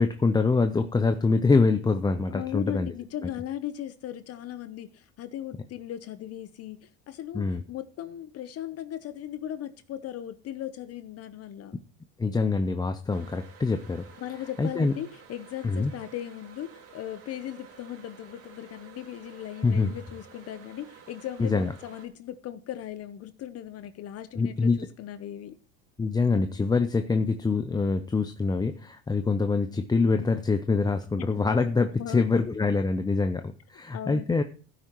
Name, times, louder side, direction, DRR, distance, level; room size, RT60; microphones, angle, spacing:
voice 1, 0.0-2.9 7.3-7.6 12.2-14.0 14.6-14.9 15.6-15.9 19.6-19.9 21.4-21.7 24.4-24.9 26.0-34.4, left 4 dB, 10° left, 8 dB, 0.6 m, -25 dB
voice 2, 2.3-11.8 14.2-25.6 31.2-32.4 33.9-34.4, left 12 dB, 45° left, 12 dB, 0.8 m, -38 dB
sound 1, 13.1-22.1, right 7 dB, 45° right, 2.6 m, -51 dB
15.0 x 8.9 x 3.0 m, 0.40 s
supercardioid pair, 105°, 35 cm